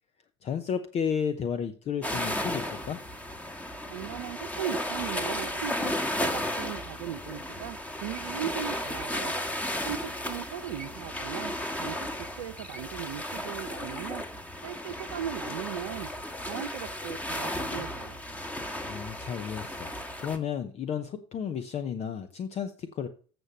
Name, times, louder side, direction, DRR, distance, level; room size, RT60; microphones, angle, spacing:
voice 1, 0.4-3.0 18.9-19.9 20.2-23.1, left 7 dB, 45° left, 9 dB, 0.8 m, -32 dB
sound 1, 2.0-20.4, left 1 dB, 10° left, 1.5 m, -34 dB
voice 2, 3.9-9.3 9.8-14.2 14.6-16.1 16.4-18.2, right 10 dB, 85° right, 5 dB, 0.6 m, -38 dB
8.0 x 6.1 x 6.6 m, 0.41 s
hypercardioid pair, 80°, 15 cm